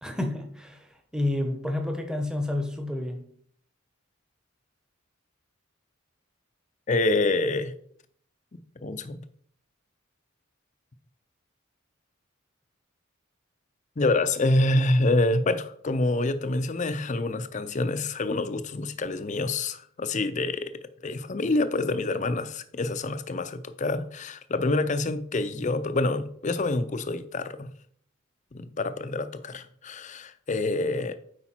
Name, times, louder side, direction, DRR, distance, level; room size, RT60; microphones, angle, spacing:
voice 1, 0.0-3.2, left 1 dB, 5° right, 0.9 m, -30 dB
voice 2, 6.9-7.8 8.8-9.2 14.0-20.7 21.0-27.7 28.5-31.1, left 2 dB, 35° left, 0.5 m, -27 dB
8.3 x 4.9 x 4.4 m
head